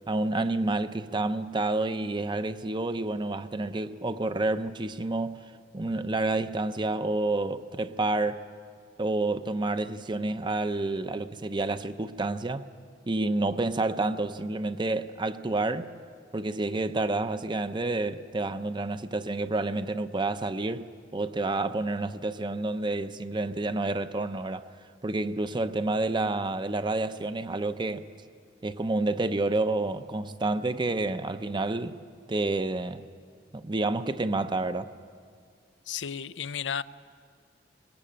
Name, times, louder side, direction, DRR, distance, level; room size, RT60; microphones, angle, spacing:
voice 1, 0.1-5.4 5.7-8.4 9.0-12.7 13.1-15.9 16.3-24.7 25.0-28.1 28.6-32.0 32.3-33.0 33.5-34.9, right 2 dB, 25° right, 0.7 m, -29 dB
voice 2, 35.9-36.8, left 7 dB, 80° left, 0.6 m, -33 dB
22.0 x 20.0 x 8.8 m
head